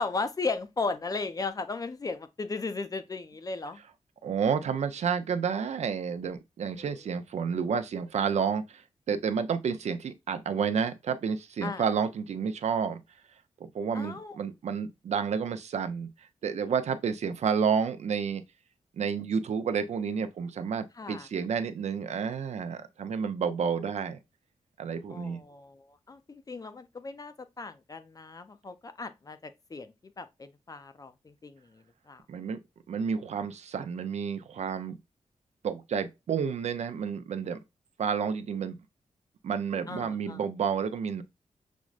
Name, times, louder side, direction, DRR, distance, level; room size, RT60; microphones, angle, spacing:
voice 1, 0.0-3.8 11.6-11.8 13.9-14.4 21.0-21.3 25.1-25.8 26.1-31.6 32.1-32.2 39.9-40.4, left 4 dB, 30° left, 0.4 m, -36 dB
voice 2, 4.2-8.8 9.1-13.0 13.7-16.1 16.4-18.4 19.0-24.2 24.8-25.4 32.3-32.6 32.9-34.9 35.6-37.6 38.0-38.8 39.4-41.2, right 6 dB, 70° right, 0.4 m, -30 dB
6.0 x 2.1 x 2.3 m
wide cardioid pair, 100°, 12 cm